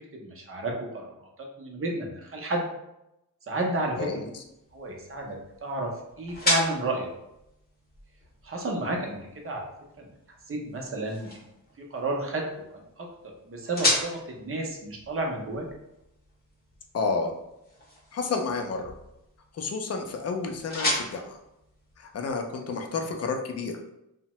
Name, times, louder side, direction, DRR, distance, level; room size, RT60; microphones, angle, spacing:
voice 1, 0.1-2.7 3.5-4.3 4.7-5.9 6.2-7.1 8.4-9.6 10.0-10.1 10.5-11.4 11.9-12.4 12.7-13.1 13.5-15.6, right 2 dB, 40° right, 0 dB, 0.6 m, -31 dB
sound 1, 3.7-22.5, left 1 dB, 30° left, 0.8 m, -36 dB
voice 2, 16.9-17.3 18.1-18.9 19.5-21.4 22.0-23.8, left 4 dB, 50° left, 4 dB, 0.4 m, -30 dB
2.7 x 2.1 x 2.9 m, 0.86 s
wide cardioid pair, 145°, 33 cm